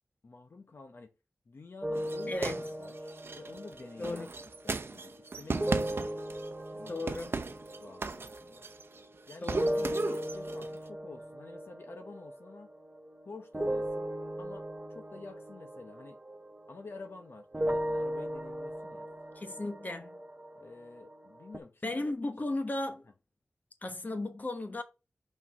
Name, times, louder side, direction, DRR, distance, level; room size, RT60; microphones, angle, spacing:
voice 1, 0.2-1.1 1.5-2.5 2.8-4.3 4.6-6.2 6.7-6.9 7.7-8.7 9.3-12.7 13.2-14.1 14.4-16.2 16.7-19.1 20.5-22.0 22.5-22.6, left 3 dB, 65° left, 0.8 m, -49 dB
sound 1, 1.8-9.2 9.5-17.2 17.5-21.6, equal, 25° right, 0.7 m, -38 dB
sound 2, 1.9-6.6 6.9-9.0 9.3-10.7, right 4 dB, 65° right, 0.7 m, -37 dB
voice 2, 2.3-2.6 4.0-4.3 6.9-7.3 9.4-9.9 19.3-20.2 21.8-23.1 23.8-24.8, left 2 dB, 40° left, 1.2 m, -35 dB
6.0 x 4.6 x 4.4 m
wide cardioid pair, 75°, 4 cm